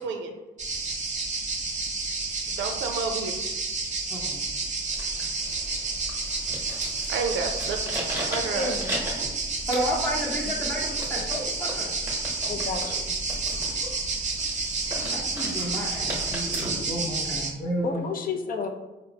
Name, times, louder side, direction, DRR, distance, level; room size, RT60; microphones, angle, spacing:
voice 1, 0.0-0.3 2.5-3.3 7.1-7.8 8.3-8.8, right 5 dB, 70° right, 5 dB, 0.4 m, -30 dB
sound 1, 0.6-17.5, right 3 dB, 35° right, 0.7 m, -30 dB
voice 2, 4.1-4.4 9.7-11.9 15.1-18.0, equal, 10° left, -7 dB, 0.8 m, -31 dB
sound 2, 4.9-16.7, right 1 dB, 10° right, 1.0 m, -37 dB
voice 3, 8.5-9.0 12.5-13.1 17.8-18.7, left 5 dB, 45° left, 4 dB, 0.5 m, -31 dB
4.1 x 2.0 x 2.8 m, 1.1 s
cardioid pair, 90°, 20 cm